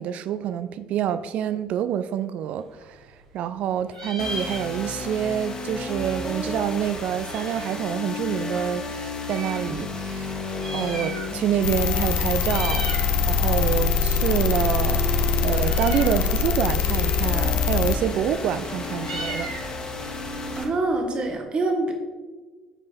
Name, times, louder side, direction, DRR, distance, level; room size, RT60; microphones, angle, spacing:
voice 1, 0.0-3.0 3.3-12.9 13.3-15.2 15.4-19.5, right 9 dB, 50° right, 0.4 m, -27 dB
Meow, 2.6-3.6 3.8-5.1 5.4-5.5 5.7-7.8 8.5-9.7 10.4-11.6 11.9-12.1 12.4-13.1 13.5-21.3, right 1 dB, 80° right, 1.2 m, -38 dB
sound 1, 4.2-20.6, left 2 dB, 30° left, 1.5 m, -33 dB
sound 2, 11.6-18.0, left 6 dB, 60° left, 0.5 m, -23 dB
voice 2, 20.5-22.0, right 2 dB, 35° right, 1.4 m, -25 dB
8.6 x 4.9 x 4.3 m
figure-of-eight pair, 50°, 3 cm